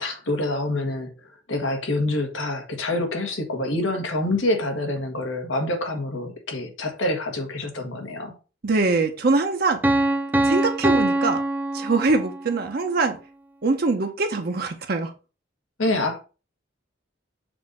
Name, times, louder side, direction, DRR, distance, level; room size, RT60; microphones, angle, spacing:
voice 1, 0.0-8.4 15.8-16.2, left 2 dB, 90° left, 1.5 m, -26 dB
voice 2, 8.6-9.8 10.4-11.4 11.7-13.2 13.6-15.1, right 3 dB, 50° right, 0.6 m, -23 dB
Piano, 9.8-12.6, right 1 dB, 10° right, 0.4 m, -23 dB
6.9 x 2.6 x 5.3 m
head